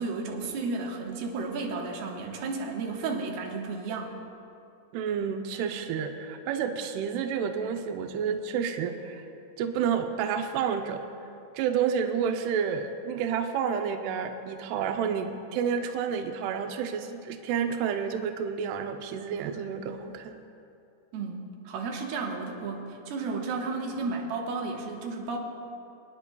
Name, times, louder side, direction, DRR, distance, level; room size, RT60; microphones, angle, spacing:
voice 1, 0.0-4.1 21.1-25.4, right 4 dB, 75° right, 0 dB, 2.7 m, -33 dB
voice 2, 4.9-9.2 9.6-11.0 11.5-20.4, right 7 dB, 90° right, 6 dB, 2.3 m, -30 dB
25.0 x 9.8 x 2.2 m, 2.6 s
omnidirectional pair, 5.3 m